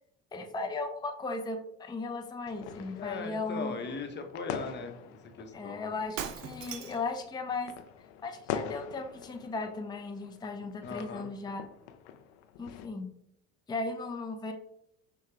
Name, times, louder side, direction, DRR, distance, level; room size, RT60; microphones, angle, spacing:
voice 1, 0.3-3.9 5.5-7.7 8.2-11.7 12.6-13.1 13.7-14.5, left 3 dB, 10° left, 4 dB, 0.5 m, -36 dB
sound 1, 2.5-12.9, left 8 dB, 80° left, 0.5 m, -44 dB
voice 2, 3.0-5.9 10.8-11.3, left 4 dB, 30° left, 5 dB, 0.9 m, -39 dB
Shatter, 6.2-7.1, right 9 dB, 65° right, 0.6 m, -39 dB
5.6 x 2.3 x 3.2 m, 0.74 s
supercardioid pair, 75°, 35 cm